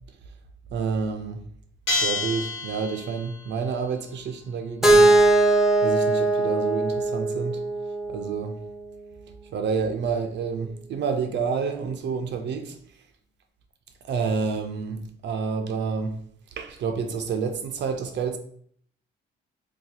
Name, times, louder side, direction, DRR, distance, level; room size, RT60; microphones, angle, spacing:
voice 1, 0.7-1.4 2.0-5.2 5.8-7.6 8.1-8.5 9.5-12.8 14.0-16.1 16.6-18.4, right 5 dB, 65° right, 0.5 m, -29 dB
Bell, 1.9-3.4, left 3 dB, 80° left, 1.4 m, -28 dB
Keyboard (musical), 4.8-8.7, right 2 dB, ahead, 0.6 m, -20 dB
2.8 x 2.2 x 3.9 m
cardioid pair, 90°, 20 cm